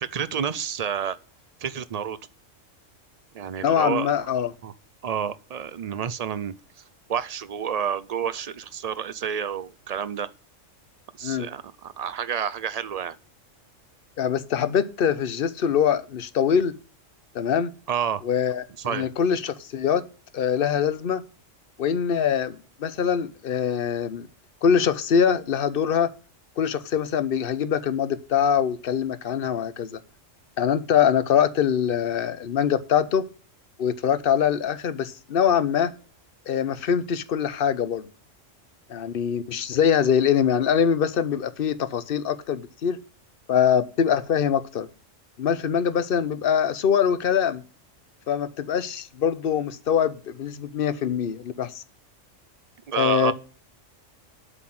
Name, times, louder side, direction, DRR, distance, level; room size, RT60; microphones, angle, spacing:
voice 1, 0.0-1.2 1.6-2.2 3.3-4.1 4.6-4.7 5.0-6.5 7.1-10.3 11.2-13.2 17.9-18.2 18.8-19.1 52.9-53.3, right 8 dB, 70° right, 0.3 m, -29 dB
voice 2, 3.6-4.5 11.2-11.5 14.2-16.8 17.3-17.7 18.2-20.1 20.3-21.2 21.8-24.3 24.6-26.1 26.6-30.0 30.6-33.2 33.8-35.9 36.5-38.1 38.9-43.0 43.5-44.9 45.4-47.6 48.3-51.8 52.9-53.3, left 8 dB, 50° left, 0.9 m, -23 dB
8.1 x 5.8 x 7.7 m
omnidirectional pair, 1.3 m